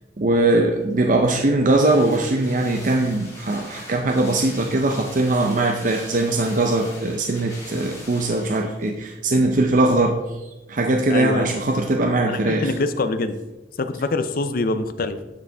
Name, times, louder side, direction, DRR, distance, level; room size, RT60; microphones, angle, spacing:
voice 1, 0.2-10.2 10.7-12.7, right 2 dB, 45° right, 2 dB, 0.6 m, -20 dB
sound 1, 0.8-9.0 9.3-9.4, left 1 dB, 20° left, 2.7 m, -41 dB
voice 2, 11.1-11.5 12.3-13.3 13.8-15.2, left 3 dB, 55° left, 11 dB, 0.5 m, -24 dB
12.0 x 4.9 x 3.4 m, 1.1 s
head